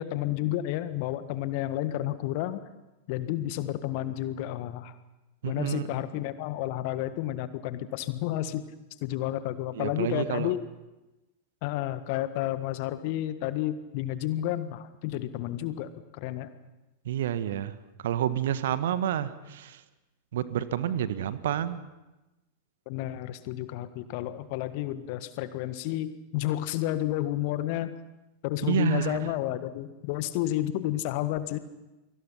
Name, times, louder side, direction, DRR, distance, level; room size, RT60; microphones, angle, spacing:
voice 1, 0.0-2.6 3.1-4.9 5.4-8.6 9.0-10.6 11.6-16.5 22.8-28.0 28.4-31.6, left 14 dB, 45° left, 12 dB, 1.6 m, -31 dB
voice 2, 5.4-5.9 9.7-10.5 17.0-17.7 18.0-19.8 20.3-21.8 28.7-29.3, right 10 dB, 60° right, 13 dB, 1.4 m, -29 dB
30.0 x 23.0 x 5.7 m, 1.0 s
figure-of-eight pair, 90°, 0 cm